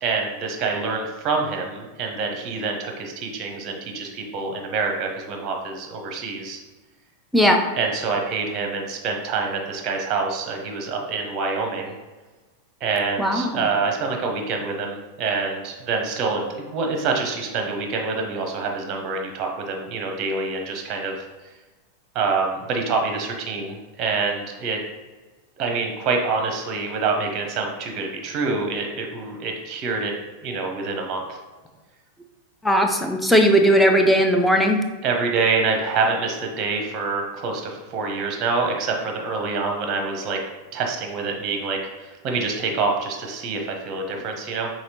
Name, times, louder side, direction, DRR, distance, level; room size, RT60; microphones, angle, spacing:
voice 1, 0.0-6.6 7.8-12.0 12.8-21.2 22.1-24.8 25.6-30.1 30.4-31.2 35.0-40.4 40.7-44.7, right 4 dB, 35° right, 2 dB, 0.7 m, -26 dB
voice 2, 13.2-13.5 32.6-34.8, equal, ahead, 3 dB, 0.5 m, -17 dB
5.8 x 2.8 x 2.8 m, 1.2 s
figure-of-eight pair, 90°, 0 cm